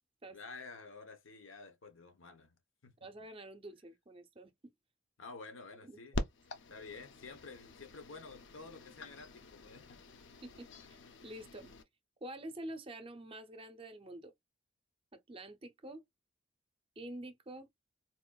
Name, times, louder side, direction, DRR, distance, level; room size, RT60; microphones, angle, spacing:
voice 1, 0.3-3.3 5.2-6.2 6.7-10.0, left 4 dB, 90° left, 0.9 m, -51 dB
voice 2, 3.0-4.7 5.8-6.0 10.4-11.7 12.2-14.3 15.1-16.0 17.0-17.7, right 1 dB, 30° right, 0.5 m, -48 dB
sound 1, 6.1-11.8, left 2 dB, 65° left, 0.6 m, -45 dB
4.1 x 2.4 x 2.3 m
head